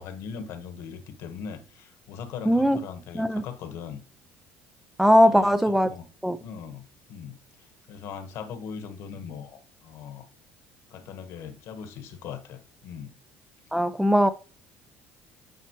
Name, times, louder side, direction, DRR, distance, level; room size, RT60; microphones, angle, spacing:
voice 1, 0.0-4.0 5.2-6.0 6.4-10.3 10.9-13.1, left 7 dB, 65° left, 1.2 m, -40 dB
voice 2, 2.5-2.8 3.1-3.4 5.0-5.9 6.2-6.4 13.7-14.3, equal, 5° right, 0.4 m, -20 dB
9.2 x 4.3 x 3.0 m
cardioid pair, 110°, 5 cm